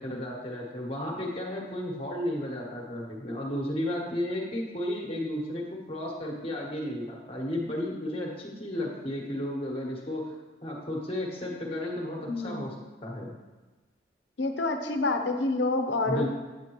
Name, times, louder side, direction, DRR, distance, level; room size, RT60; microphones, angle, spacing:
voice 1, 0.0-10.4 10.6-13.3 16.0-16.3, left 1 dB, 30° left, -1 dB, 1.2 m, -33 dB
voice 2, 12.3-12.7 14.4-16.3, left 2 dB, 90° left, 6 dB, 0.8 m, -28 dB
8.8 x 7.4 x 3.0 m, 1.3 s
head